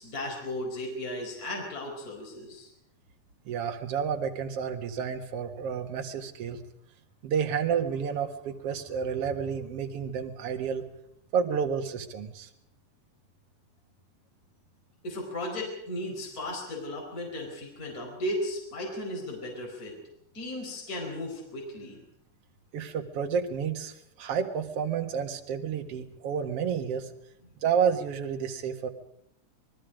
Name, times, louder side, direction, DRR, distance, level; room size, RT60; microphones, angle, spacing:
voice 1, 0.0-2.7 15.0-19.9 20.3-22.0, left 1 dB, 25° left, -1 dB, 5.1 m, -35 dB
voice 2, 3.5-6.6 7.2-10.8 11.3-12.5 22.7-27.1 27.6-28.9, right 7 dB, 55° right, 5 dB, 2.4 m, -30 dB
27.0 x 20.0 x 5.1 m, 0.73 s
omnidirectional pair, 3.7 m